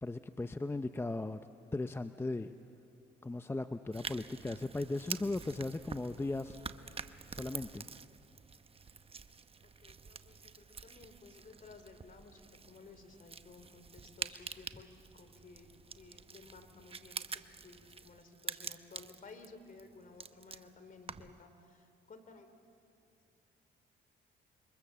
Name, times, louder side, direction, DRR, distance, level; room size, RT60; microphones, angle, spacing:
voice 1, 0.0-1.4 1.7-2.5 3.2-6.6 7.3-7.9, left 2 dB, 10° left, 10 dB, 0.6 m, -37 dB
sound 1, 3.9-21.4, right 5 dB, 30° right, 0.8 m, -47 dB
voice 2, 9.8-22.5, left 4 dB, 45° left, 8 dB, 2.9 m, -56 dB
27.5 x 24.0 x 7.4 m, 2.6 s
cardioid pair, 90°, 20 cm